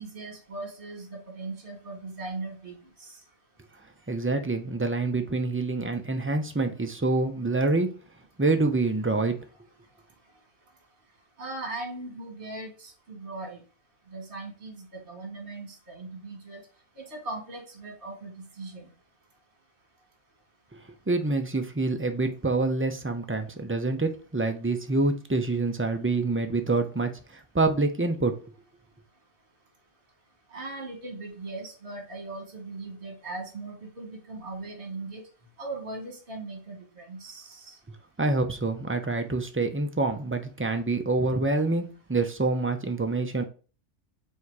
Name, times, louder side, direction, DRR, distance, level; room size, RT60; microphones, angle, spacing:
voice 1, 0.0-3.2 11.4-13.6 14.1-16.6 17.0-18.9 30.5-35.2 35.6-37.8, right 2 dB, 50° right, 1.8 m, -39 dB
voice 2, 4.1-7.9 8.4-9.4 20.7-28.4 38.2-43.4, right 3 dB, 20° right, 0.3 m, -26 dB
7.2 x 2.8 x 4.7 m
omnidirectional pair, 1.2 m